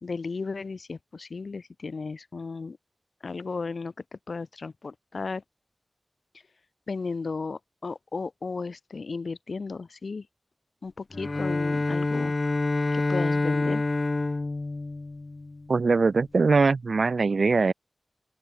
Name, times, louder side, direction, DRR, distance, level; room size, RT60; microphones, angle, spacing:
voice 1, 0.0-2.8 3.2-5.4 6.9-10.3 10.8-12.3 12.9-13.8, left 4 dB, 90° left, 1.8 m, -35 dB
Bowed string instrument, 11.1-15.7, left 2 dB, 50° left, 1.0 m, -27 dB
voice 2, 15.7-17.7, right 4 dB, 85° right, 1.2 m, -22 dB
open air
wide cardioid pair, 65°, 0 cm